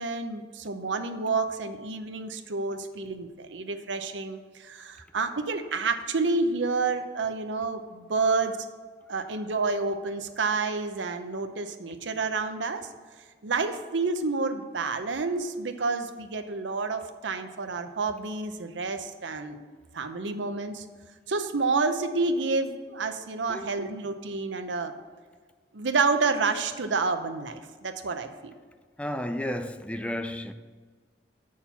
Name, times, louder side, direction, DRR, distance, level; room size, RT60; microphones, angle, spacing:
voice 1, 0.0-8.7 9.1-12.9 13.4-19.6 19.9-20.8 21.3-24.9 25.7-28.5, right 4 dB, 85° right, 0.7 m, -29 dB
voice 2, 23.5-23.9 29.0-30.5, left 1 dB, 5° left, 0.4 m, -33 dB
7.2 x 6.4 x 5.8 m
head